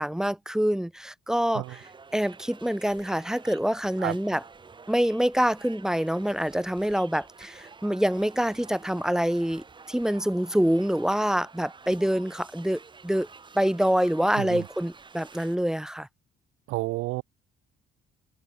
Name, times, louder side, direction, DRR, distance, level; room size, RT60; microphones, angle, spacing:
voice 1, 0.0-1.6 2.1-4.4 4.9-13.3 13.6-16.1, equal, 5° right, 0.3 m, -26 dB
sound 1, 1.6-15.6, right 4 dB, 20° right, 1.4 m, -50 dB
voice 2, 14.4-14.7 16.7-17.2, right 21 dB, 85° right, 0.4 m, -30 dB
cardioid pair, 125°, 21 cm